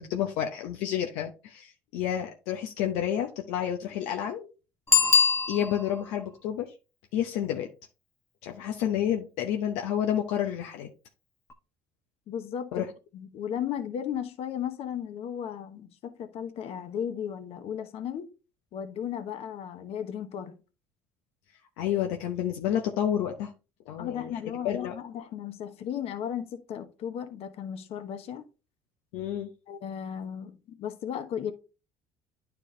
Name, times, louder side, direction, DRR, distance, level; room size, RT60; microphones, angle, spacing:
voice 1, 0.0-4.5 5.1-5.2 5.5-6.7 7.1-7.7 8.4-10.9 12.7-12.8 21.8-23.5 23.9-24.3 24.6-24.9 29.1-29.5, left 10 dB, 80° left, 0.8 m, -30 dB
Bicycle bell, 4.9-6.1 11.5-11.6, left 5 dB, 25° left, 1.1 m, -22 dB
voice 2, 12.3-12.8 13.1-18.3 18.7-20.5 24.0-28.4 29.7-31.5, left 9 dB, 60° left, 1.0 m, -35 dB
9.8 x 4.5 x 2.7 m
supercardioid pair, 80°, 11 cm